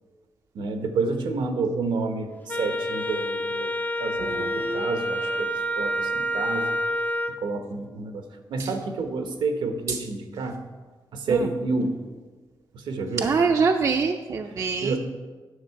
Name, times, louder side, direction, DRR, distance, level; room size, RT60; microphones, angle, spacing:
voice 1, 0.5-6.8 7.4-10.6 11.1-12.0 12.7-13.3 14.8-15.0, right 3 dB, 85° right, 7 dB, 1.0 m, -29 dB
Wind instrument woodwind instrument, 2.5-7.4, equal, 25° left, 0.4 m, -28 dB
voice 2, 4.2-4.9 8.6-8.7 9.9-10.0 11.3-11.5 13.2-15.0, right 5 dB, 45° right, 4 dB, 0.4 m, -25 dB
9.8 x 6.4 x 4.6 m, 1.4 s
wide cardioid pair, 135°, 8 cm